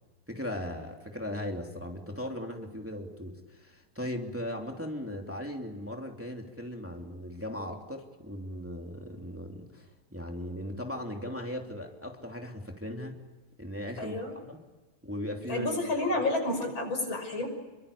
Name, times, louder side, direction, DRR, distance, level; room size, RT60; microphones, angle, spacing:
voice 1, 0.3-13.2 13.6-14.6 15.0-15.7 16.1-16.2, left 1 dB, 5° right, 2 dB, 3.0 m, -38 dB
voice 2, 14.0-14.3 15.5-17.5, left 2 dB, 75° left, 5 dB, 6.8 m, -30 dB
29.0 x 24.0 x 8.6 m, 1.2 s
omnidirectional pair, 2.2 m